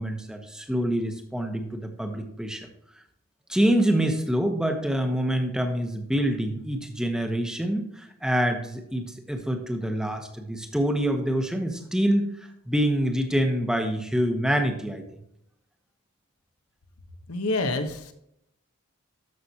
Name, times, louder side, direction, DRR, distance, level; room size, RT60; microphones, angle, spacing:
voice 1, 0.0-2.7 3.5-15.0, equal, 5° right, 4 dB, 1.0 m, -26 dB
voice 2, 17.3-18.1, left 2 dB, 75° left, 7 dB, 1.1 m, -27 dB
13.0 x 5.9 x 2.9 m, 0.77 s
head